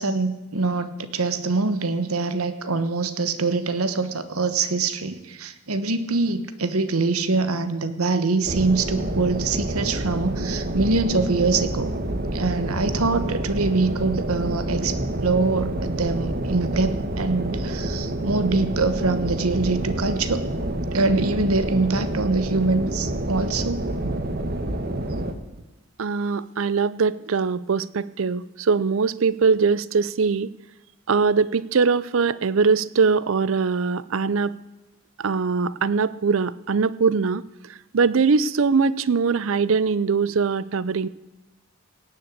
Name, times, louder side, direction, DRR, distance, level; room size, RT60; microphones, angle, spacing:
voice 1, 0.0-11.9 12.3-14.9 15.2-20.4 20.9-24.2, right 3 dB, 85° right, 11 dB, 1.2 m, -24 dB
sound 1, 8.5-25.3, right 1 dB, 45° right, 1.2 m, -28 dB
voice 2, 26.0-30.5 31.1-34.5 35.2-41.1, right 5 dB, 65° right, 19 dB, 0.5 m, -22 dB
17.5 x 6.9 x 8.6 m, 1.1 s
head